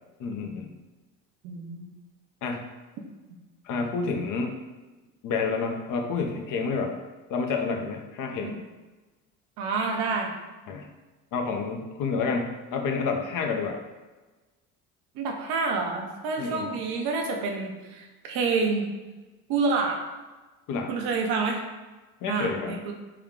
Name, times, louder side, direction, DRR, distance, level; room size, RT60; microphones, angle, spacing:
voice 1, 0.2-0.7 2.4-2.6 3.6-4.5 5.2-6.9 7.3-8.5 10.7-10.9 11.3-13.8 16.4-16.7 20.7-20.9 22.2-22.8, left 4 dB, 55° left, 3 dB, 0.7 m, -29 dB
voice 2, 1.4-1.9 8.4-8.6 9.6-10.3 15.2-18.9 19.5-20.0 20.9-21.6 22.3-22.9, right 4 dB, 70° right, 2 dB, 0.8 m, -28 dB
3.4 x 2.3 x 3.6 m, 1.2 s
supercardioid pair, 80°, 38 cm